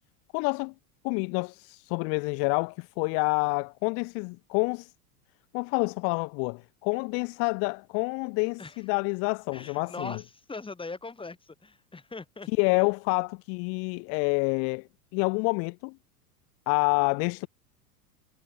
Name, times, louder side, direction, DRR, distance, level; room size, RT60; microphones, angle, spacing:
voice 1, 0.3-0.7 1.0-4.9 5.5-10.2 12.5-16.0 16.7-17.5, left 36 dB, 35° left, 0.4 m, -28 dB
voice 2, 9.5-12.5, left 3 dB, 10° left, 6.6 m, -40 dB
hypercardioid pair, 120°, 47 cm